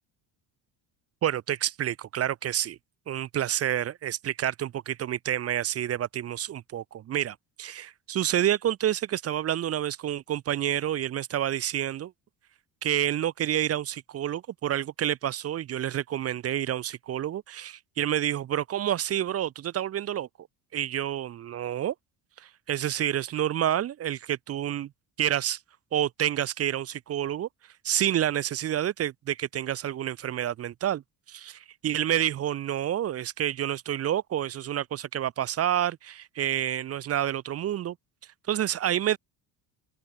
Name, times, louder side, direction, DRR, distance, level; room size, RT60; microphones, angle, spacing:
voice 1, 1.2-2.8 3.1-12.1 12.8-20.3 20.7-21.9 22.4-24.9 25.2-25.6 25.9-27.5 27.8-31.0 31.3-38.0 38.5-39.2, right 11 dB, 35° right, 0.4 m, -28 dB
open air
cardioid pair, 105°, 47 cm